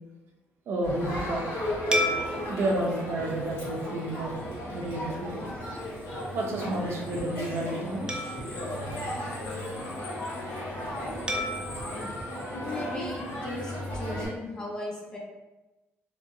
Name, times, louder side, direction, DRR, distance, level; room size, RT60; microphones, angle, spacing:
voice 1, 0.7-1.4 2.5-4.3 4.7-5.4 6.3-8.2, right 1 dB, 60° right, 0 dB, 0.6 m, -30 dB
Crowd, 0.8-14.3, left 1 dB, 80° left, 1.2 m, -35 dB
sound 1, 1.9-4.6 5.2-5.4 8.1-9.9 11.3-13.6, equal, 20° right, 0.3 m, -35 dB
voice 2, 12.6-15.2, left 1 dB, 20° left, -3 dB, 0.6 m, -37 dB
3.0 x 2.7 x 2.6 m, 1.1 s
cardioid pair, 125°, 5 cm